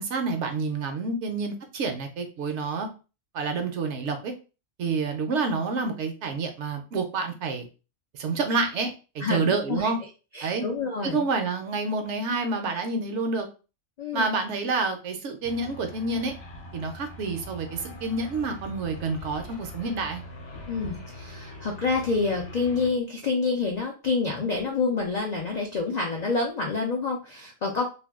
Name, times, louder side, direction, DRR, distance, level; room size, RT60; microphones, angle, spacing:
voice 1, 0.0-2.9 3.3-4.3 4.8-7.7 8.1-10.0 10.4-10.7 11.0-13.5 14.1-16.3 16.7-20.2, right 3 dB, 65° right, 5 dB, 0.8 m, -28 dB
voice 2, 9.2-9.8 10.3-11.2 14.0-14.2 20.7-27.8, left 4 dB, 70° left, 1 dB, 0.4 m, -27 dB
sound 1, 15.4-22.9, left 1 dB, 55° left, 0.9 m, -42 dB
2.5 x 2.2 x 3.5 m, 0.33 s
omnidirectional pair, 1.4 m